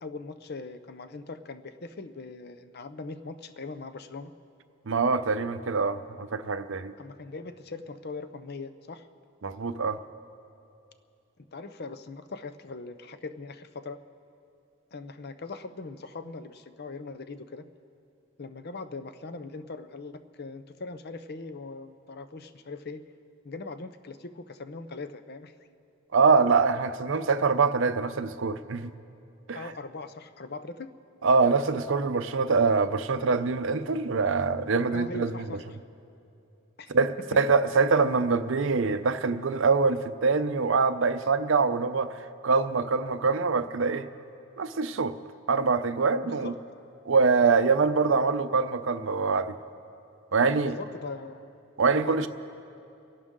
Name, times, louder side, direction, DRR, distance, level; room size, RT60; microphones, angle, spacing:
voice 1, 0.0-4.3 7.0-9.1 11.4-14.0 14.9-17.6 18.4-23.0 23.4-25.5 29.5-30.9 34.9-35.8 36.8-36.9 46.2-46.6 50.6-51.5 52.1-52.3, left 3 dB, 50° left, 10 dB, 0.6 m, -40 dB
voice 2, 4.9-6.9 9.4-10.0 26.1-28.9 29.5-29.7 31.2-35.3 36.9-42.2 42.4-44.1 44.6-45.1 45.5-46.5 47.0-49.6 50.3-50.8 51.8-52.3, right 4 dB, 65° right, 11 dB, 0.6 m, -24 dB
29.0 x 11.5 x 3.7 m, 2.7 s
head